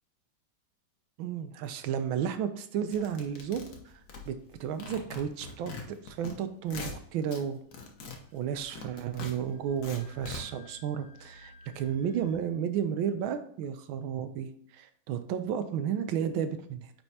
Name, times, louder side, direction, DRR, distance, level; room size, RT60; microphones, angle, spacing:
voice 1, 1.2-3.7 4.3-4.4 4.6-5.7 6.0-7.6 8.3-16.9, right 8 dB, 80° right, 9 dB, 1.3 m, -32 dB
sound 1, 2.9-4.5 4.8-6.3 6.6-7.4 7.7-10.4, left 4 dB, 55° left, 1.3 m, -42 dB
sound 2, 8.0-12.4, equal, 15° left, 1.4 m, -54 dB
8.9 x 4.4 x 2.8 m, 0.65 s
omnidirectional pair, 2.3 m